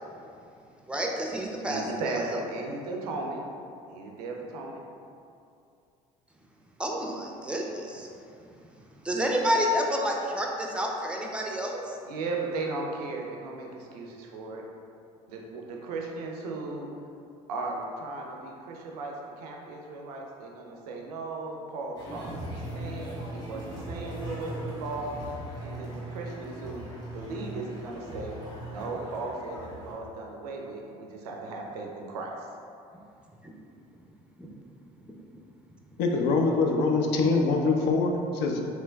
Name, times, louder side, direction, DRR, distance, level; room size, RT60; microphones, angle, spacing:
voice 1, 0.9-2.1 6.8-8.1 9.0-11.8 33.4-33.5, equal, 5° right, 0 dB, 0.4 m, -29 dB
voice 2, 1.7-3.4 3.9-4.8 12.1-14.6 15.3-16.9 17.5-22.5 22.7-25.1 25.6-26.9 27.1-28.4 28.7-32.5, right 3 dB, 85° right, 0 dB, 0.4 m, -36 dB
sound 1, 22.0-29.9, right 1 dB, 20° left, 1.2 m, -39 dB
voice 3, 36.0-38.6, left 3 dB, 65° left, 2 dB, 0.4 m, -24 dB
3.1 x 3.0 x 2.2 m, 2.5 s
hypercardioid pair, 65°, 19 cm